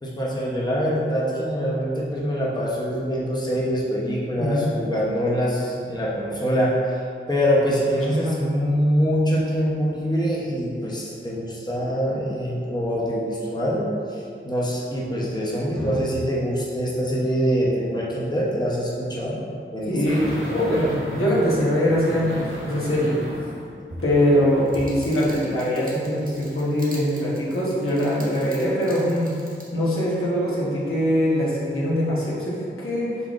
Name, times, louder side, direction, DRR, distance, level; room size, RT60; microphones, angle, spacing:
voice 1, 0.0-7.0 7.3-20.2, equal, 20° left, -6 dB, 0.9 m, -24 dB
voice 2, 4.4-4.7 8.1-8.4 19.9-23.2 24.0-29.3 29.7-33.2, equal, 90° left, -7 dB, 1.1 m, -22 dB
Digit Drill, 20.1-25.0 25.3-25.4, equal, 70° right, 1.2 m, -35 dB
sound 1, 24.6-29.7, right 1 dB, 40° right, 0.9 m, -45 dB
5.6 x 3.7 x 2.5 m, 2.4 s
wide cardioid pair, 70°, 21 cm